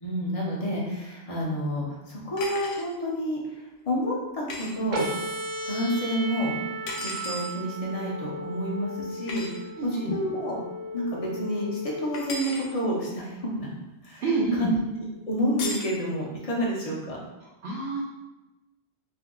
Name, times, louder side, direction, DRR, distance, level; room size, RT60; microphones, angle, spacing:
voice 1, 0.0-5.2 5.6-6.5 7.0-10.6 10.9-13.7 14.0-14.2 14.6-14.8 15.3-17.2, equal, 40° left, -4 dB, 0.7 m, -29 dB
sound 1, 2.4-2.9 4.5-4.7 6.9-7.5 9.3-9.5 12.1-12.7 15.6-15.9, left 3 dB, 75° left, 0.8 m, -35 dB
sound 2, 4.9-12.9, right 1 dB, 55° right, 0.6 m, -35 dB
voice 2, 9.8-10.1 14.2-14.7 17.6-18.0, right 3 dB, 80° right, -4 dB, 0.9 m, -27 dB
2.6 x 2.2 x 3.6 m, 1.0 s
omnidirectional pair, 1.1 m